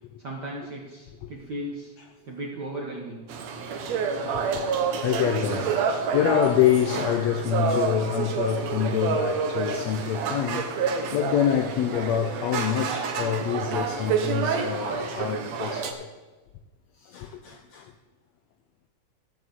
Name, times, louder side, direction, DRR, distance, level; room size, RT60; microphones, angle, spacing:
voice 1, 0.2-1.9 2.3-3.2, right 1 dB, 50° right, 1.3 m, -37 dB
sound 1, 3.3-15.9, right 5 dB, 65° right, 2.0 m, -28 dB
voice 2, 5.0-16.1 17.0-17.9, left 9 dB, 80° left, 1.5 m, -26 dB
14.0 x 4.9 x 7.8 m
omnidirectional pair, 3.7 m